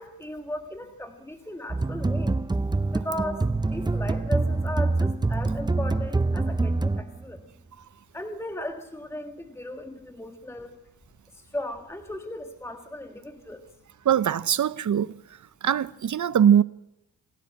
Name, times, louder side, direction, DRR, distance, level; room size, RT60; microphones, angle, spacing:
voice 1, 0.0-2.4 2.9-7.4 8.1-10.8 11.3-13.7, left 1 dB, 5° left, 1.7 m, -36 dB
sound 1, 1.7-7.4, right 3 dB, 10° right, 0.7 m, -25 dB
voice 2, 14.0-15.2 15.6-16.6, right 9 dB, 50° right, 0.9 m, -21 dB
27.5 x 12.5 x 8.8 m
cardioid pair, 105°, 37 cm